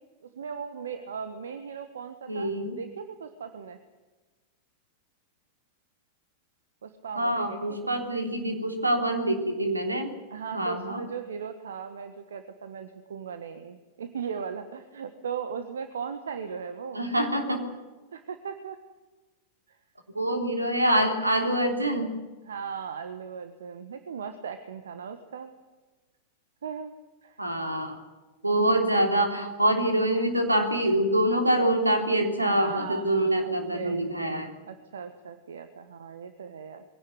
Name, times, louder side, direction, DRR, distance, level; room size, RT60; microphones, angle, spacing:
voice 1, 0.2-3.8 6.8-7.6 10.3-17.0 18.1-18.8 19.7-19.8 22.4-25.5 26.6-26.9 27.2-27.4 32.4-34.0 34.7-36.8, right 6 dB, 65° right, 9 dB, 1.4 m, -38 dB
voice 2, 2.3-2.8 7.1-10.1 10.5-11.0 16.9-17.7 20.1-22.1 27.4-28.0 28.4-34.5, right 1 dB, 85° right, 4 dB, 3.4 m, -25 dB
22.5 x 17.0 x 9.6 m, 1.3 s
figure-of-eight pair, 90°, 0 cm